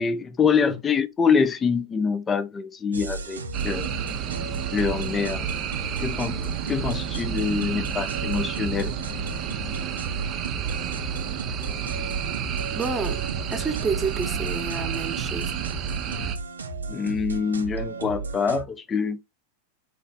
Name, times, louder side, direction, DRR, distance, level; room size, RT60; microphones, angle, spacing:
voice 1, 0.0-3.9 4.7-5.4 6.0-6.4 6.7-9.0 16.9-19.2, left 6 dB, 20° left, 0.6 m, -25 dB
sound 1, 2.9-18.6, right 3 dB, 75° right, 0.6 m, -34 dB
sound 2, 3.5-16.4, right 9 dB, 35° right, 0.6 m, -31 dB
voice 2, 12.8-15.5, right 4 dB, 15° right, 1.0 m, -30 dB
4.1 x 3.2 x 4.0 m
figure-of-eight pair, 90°, 0 cm